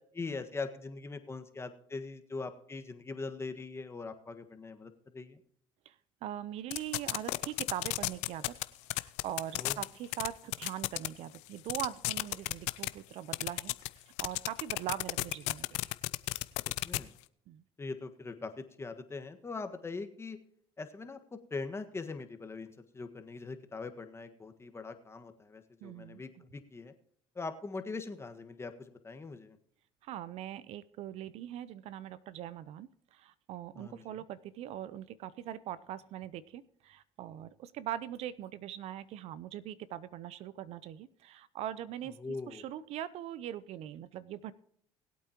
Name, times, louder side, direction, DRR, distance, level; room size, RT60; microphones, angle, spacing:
voice 1, 0.1-5.4 9.5-9.8 16.8-17.1 17.8-20.4 20.8-26.9 27.3-29.6 33.7-34.2 42.2-42.6, left 3 dB, 20° left, 7 dB, 1.5 m, -42 dB
voice 2, 6.2-8.6 8.9-15.9 17.5-17.6 25.8-26.2 30.0-44.5, right 11 dB, 65° right, 17 dB, 0.7 m, -41 dB
sound 1, 6.7-8.6 8.9-9.8 10.1-10.3 10.5-11.1 11.3-11.4 11.7-12.9 13.3-13.9 14.2-17.0, left 22 dB, 75° left, 0.6 m, -31 dB
20.5 x 8.5 x 2.9 m, 0.67 s
supercardioid pair, 80°, 11 cm